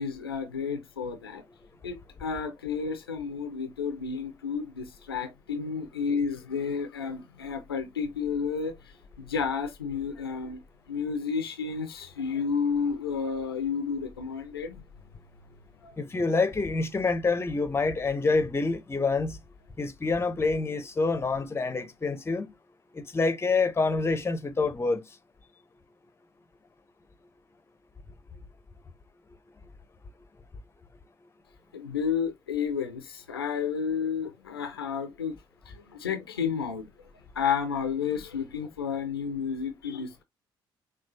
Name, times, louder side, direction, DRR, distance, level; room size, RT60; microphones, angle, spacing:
voice 1, 0.0-1.4 1.8-8.7 9.2-10.6 10.9-14.8 15.8-15.9 31.7-35.4 35.7-36.9 37.4-40.2, left 6 dB, 80° left, 0.5 m, -31 dB
voice 2, 16.0-19.4 19.8-22.5 22.9-25.0, left 3 dB, 20° left, 0.7 m, -27 dB
6.0 x 2.3 x 2.6 m
figure-of-eight pair, 45°, 12 cm